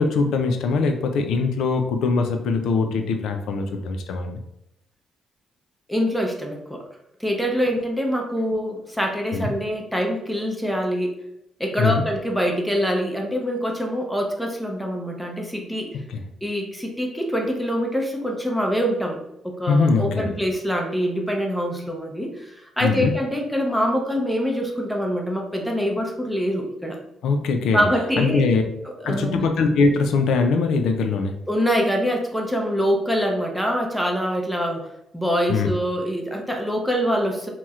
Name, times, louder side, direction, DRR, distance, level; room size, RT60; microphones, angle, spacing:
voice 1, 0.0-4.4 9.3-9.5 11.8-12.0 16.1-16.2 19.7-20.3 22.8-23.1 27.2-27.8 28.2-28.6 29.0-31.4 35.5-35.7, left 4 dB, 85° left, 5 dB, 0.3 m, -22 dB
voice 2, 5.9-6.8 7.2-11.1 11.6-16.0 16.4-27.0 27.7-28.5 29.0-29.5 31.5-34.9 35.1-37.5, equal, ahead, 1 dB, 0.5 m, -24 dB
4.1 x 2.1 x 2.4 m, 0.82 s
cardioid pair, 115°, 0 cm